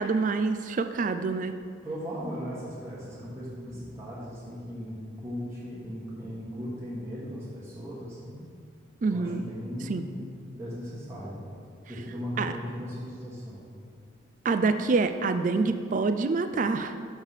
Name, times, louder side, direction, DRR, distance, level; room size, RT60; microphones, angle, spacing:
voice 1, 0.0-1.6 9.0-9.4 9.9-10.0 12.4-12.5 14.4-16.9, right 4 dB, 40° right, 9 dB, 0.3 m, -26 dB
voice 2, 1.8-8.4 9.0-11.4 11.9-13.7, equal, 15° right, -8 dB, 1.3 m, -38 dB
6.6 x 4.7 x 5.6 m, 2.3 s
head